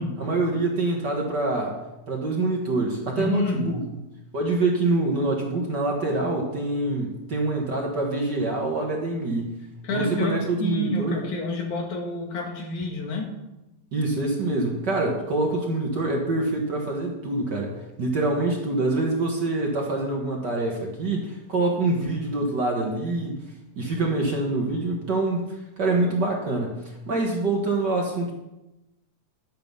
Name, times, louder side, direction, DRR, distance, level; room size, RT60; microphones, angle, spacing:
voice 1, 0.2-1.8 2.1-3.7 4.3-9.5 9.9-11.2 13.9-17.7 18.0-23.4 23.8-25.4 25.8-28.3, right 2 dB, 45° right, 0 dB, 1.6 m, -25 dB
voice 2, 3.2-3.9 9.8-13.3, left 2 dB, 85° left, 2 dB, 3.2 m, -28 dB
11.5 x 7.7 x 5.4 m, 0.98 s
omnidirectional pair, 3.3 m